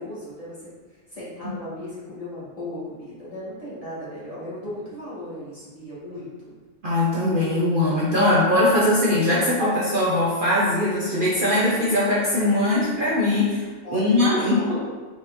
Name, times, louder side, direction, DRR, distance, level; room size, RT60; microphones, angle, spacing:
voice 1, 0.0-6.5 13.8-14.8, left 1 dB, 30° left, -10 dB, 1.6 m, -36 dB
voice 2, 6.8-13.6 13.9-14.8, left 1 dB, 50° right, -7 dB, 0.8 m, -21 dB
4.5 x 4.0 x 2.6 m, 1.4 s
omnidirectional pair, 1.3 m